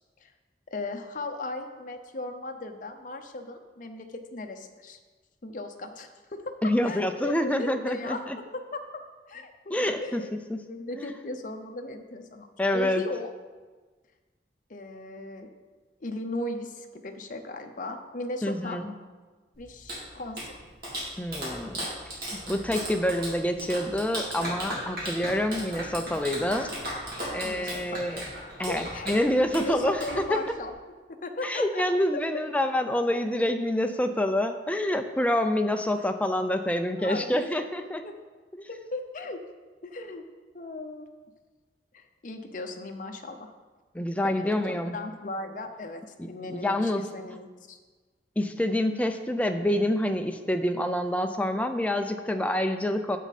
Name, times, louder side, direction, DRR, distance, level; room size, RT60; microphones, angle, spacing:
voice 1, 0.7-5.0 5.4-8.2 8.5-9.0 9.3-9.7 10.0-10.3 10.7-12.5 12.7-13.3 14.7-15.5 16.0-18.8 19.6-20.6 27.4-28.1 28.7-29.1 29.5-30.8 31.1-31.8 32.1-32.4 36.0-36.1 37.0-37.5 38.0-38.1 38.7-39.4 39.8-40.2 40.5-41.1 41.9-43.5 44.2-47.8, left 2 dB, 50° left, 5 dB, 0.8 m, -37 dB
voice 2, 6.6-8.4 9.7-10.2 10.5-10.6 10.9-11.1 12.6-13.0 18.4-18.9 21.2-21.9 22.3-26.7 27.3-28.2 28.6-30.4 31.4-38.0 38.5-38.7 43.9-45.0 46.5-47.1 48.4-53.2, left 1 dB, 10° left, 6 dB, 0.5 m, -27 dB
Clapping, 19.5-30.7, right 1 dB, 60° right, 2.7 m, -37 dB
9.2 x 7.4 x 4.2 m, 1.4 s
head